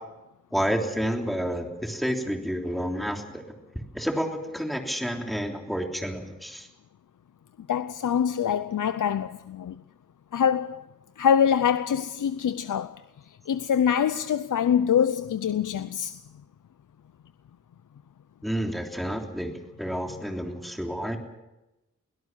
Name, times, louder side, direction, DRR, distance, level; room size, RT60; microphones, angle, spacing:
voice 1, 0.5-3.4 3.9-6.7 18.4-19.5 19.8-21.2, equal, ahead, 3.2 m, -29 dB
voice 2, 7.7-9.8 10.3-10.9 11.2-16.2, left 8 dB, 85° left, 0.6 m, -25 dB
23.0 x 17.0 x 7.3 m
wide cardioid pair, 110°, 30 cm